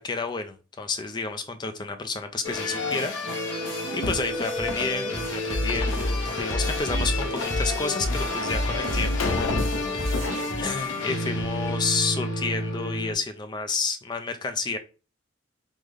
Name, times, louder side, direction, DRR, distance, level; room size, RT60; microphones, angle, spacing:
voice 1, 0.0-3.1 3.5-9.7 9.9-10.2 10.6-14.8, left 4 dB, 20° left, 0.3 m, -30 dB
sound 1, 2.4-13.1, left 2 dB, 70° left, 1.0 m, -30 dB
sound 2, 4.0-10.9 11.2-11.8, left 3 dB, 90° left, 0.5 m, -34 dB
sound 3, 5.5-10.4, equal, 35° right, 0.6 m, -28 dB
3.6 x 2.1 x 3.2 m
head